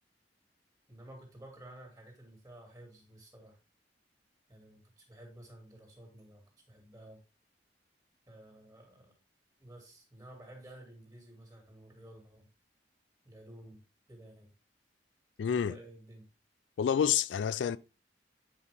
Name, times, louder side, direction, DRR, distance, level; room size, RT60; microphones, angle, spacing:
voice 1, 0.9-3.6 4.5-7.2 8.3-9.1 9.6-12.5 13.2-13.8 14.1-14.5 15.5-16.3, right 1 dB, 20° right, 2.5 m, -53 dB
voice 2, 15.4-15.7 16.8-17.8, left 8 dB, 90° left, 0.3 m, -28 dB
8.4 x 4.9 x 3.4 m
head